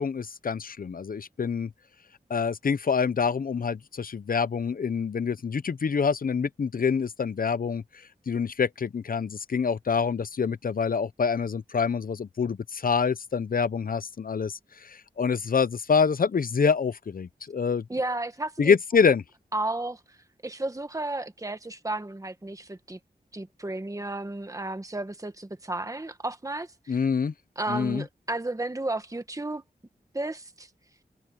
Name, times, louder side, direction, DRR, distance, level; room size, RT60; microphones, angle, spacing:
voice 1, 0.0-1.7 2.3-7.8 8.3-17.8 18.6-19.2 26.9-27.3 27.7-28.0, left 6 dB, 60° left, 0.8 m, -26 dB
voice 2, 17.9-18.8 19.5-20.2 20.4-23.0 23.3-27.0 27.6-29.6 30.1-30.7, right 2 dB, 20° right, 1.6 m, -33 dB
wide cardioid pair, 70°, 16 cm